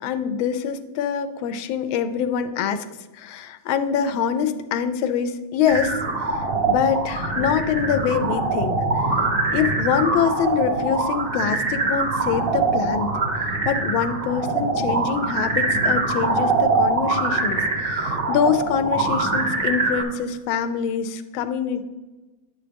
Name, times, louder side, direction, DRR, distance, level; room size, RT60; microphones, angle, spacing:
voice 1, 0.0-2.8 3.1-9.1 9.5-13.1 13.6-21.8, left 7 dB, 80° left, 9 dB, 1.4 m, -25 dB
sound 1, 5.7-20.0, right 3 dB, 35° right, 1.3 m, -23 dB
9.6 x 7.7 x 3.4 m, 1.2 s
omnidirectional pair, 2.2 m